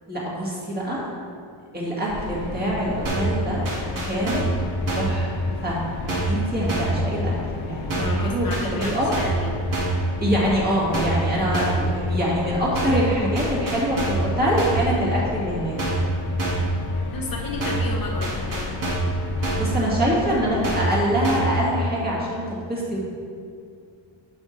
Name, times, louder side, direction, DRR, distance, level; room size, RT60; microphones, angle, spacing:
voice 1, 0.1-1.0 1.7-3.6 4.0-4.5 4.9-5.4 5.6-5.8 6.3-7.3 7.7-8.5 8.8-9.1 10.2-15.8 19.4-22.4 22.7-23.0, equal, 20° right, -6 dB, 2.0 m, -24 dB
sound 1, 2.1-20.8, left 3 dB, 85° left, 1.1 m, -34 dB
sound 2, 3.0-3.4 3.6-4.6 4.9-5.2 6.1-6.4 6.7-7.0 7.9-8.2 8.5-9.4 9.7-10.0 10.9-11.2 11.5-11.9 12.7-13.1 13.3-14.3 14.6-14.9 15.8-16.1 16.4-16.7 17.6-17.9 18.2-19.1 19.4-19.7 20.6-21.0 21.2-21.6, right 2 dB, 40° right, 1.9 m, -25 dB
voice 2, 8.0-9.6 17.1-18.7, left 2 dB, 45° left, -1 dB, 0.9 m, -33 dB
11.5 x 5.4 x 3.3 m, 2.3 s
wide cardioid pair, 160°, 47 cm